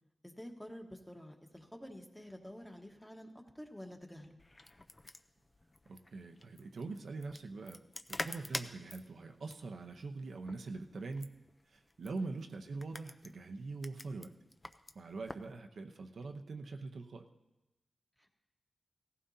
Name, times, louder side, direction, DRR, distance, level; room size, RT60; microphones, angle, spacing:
voice 1, 0.2-3.3 3.5-4.4 12.2-12.4 18.2-18.3, equal, 5° left, 2 dB, 1.3 m, -49 dB
sound 1, 4.4-15.5, left 2 dB, 25° left, 0.5 m, -47 dB
voice 2, 5.9-7.8 8.1-11.3 11.7-14.3 14.9-17.2, right 3 dB, 75° right, 4 dB, 0.8 m, -43 dB
17.0 x 15.0 x 2.8 m, 1.0 s
wide cardioid pair, 105°, 0 cm